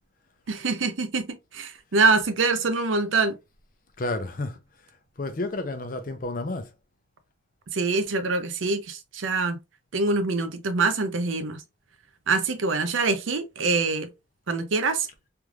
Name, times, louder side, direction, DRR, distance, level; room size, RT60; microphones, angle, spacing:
voice 1, 0.5-3.4 7.7-9.6 9.9-11.6 12.3-14.1 14.5-15.1, right 4 dB, 85° right, 0.6 m, -24 dB
voice 2, 4.0-4.6 5.2-6.7, left 2 dB, 45° left, 0.6 m, -30 dB
3.4 x 3.1 x 2.4 m
head